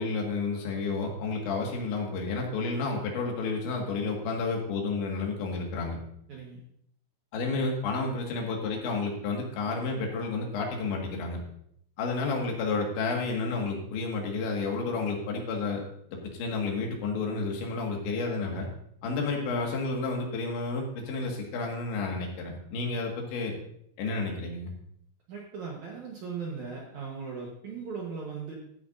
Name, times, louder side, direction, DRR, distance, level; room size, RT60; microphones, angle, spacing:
voice 1, 0.0-6.0 7.3-11.4 12.0-15.8 16.1-18.7 19.0-23.5 24.0-24.7, left 3 dB, 90° left, 0 dB, 4.2 m, -31 dB
voice 2, 6.3-6.6 25.3-28.5, right 5 dB, 70° right, -2 dB, 1.9 m, -38 dB
14.5 x 9.4 x 2.6 m, 0.70 s
omnidirectional pair, 5.1 m